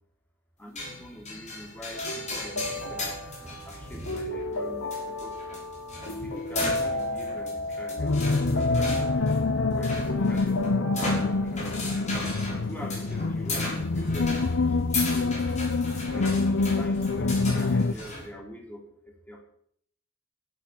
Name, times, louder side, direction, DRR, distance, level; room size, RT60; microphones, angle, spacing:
voice 1, 0.6-3.2 3.6-5.5 6.0-9.0 9.7-10.5 10.8-12.0 12.6-14.8 15.1-15.4 15.9-19.4, equal, 10° left, 1 dB, 2.9 m, -44 dB
sound 1, 0.8-18.3, left 1 dB, 35° left, 6.5 m, -36 dB
sound 2, 2.0-11.5, left 1 dB, 90° left, 2.6 m, -33 dB
sound 3, 8.0-17.9, left 3 dB, 65° left, 0.6 m, -26 dB
15.0 x 12.0 x 7.2 m, 0.65 s
head